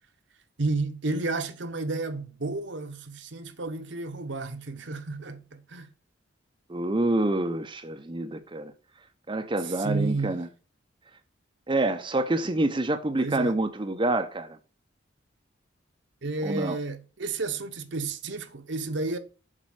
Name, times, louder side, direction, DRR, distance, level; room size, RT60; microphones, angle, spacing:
voice 1, 0.6-5.9 9.6-10.4 13.2-13.5 16.2-19.2, right 3 dB, 65° right, 0.9 m, -31 dB
voice 2, 6.7-8.7 9.3-10.5 11.7-14.6 16.4-16.8, right 2 dB, 25° right, 0.6 m, -27 dB
7.5 x 4.2 x 6.4 m
head